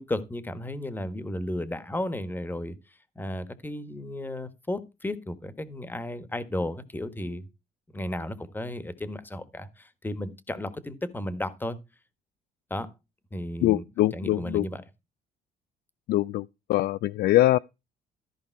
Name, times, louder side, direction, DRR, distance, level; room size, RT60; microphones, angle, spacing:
voice 1, 0.0-2.8 3.1-7.4 7.9-11.8 12.7-12.9 13.3-13.9 14.1-14.8, left 1 dB, 10° left, 1.4 m, -34 dB
voice 2, 13.6-14.7 16.1-17.6, left 15 dB, 70° left, 0.4 m, -23 dB
14.0 x 5.2 x 4.6 m
cardioid pair, 110°, 17 cm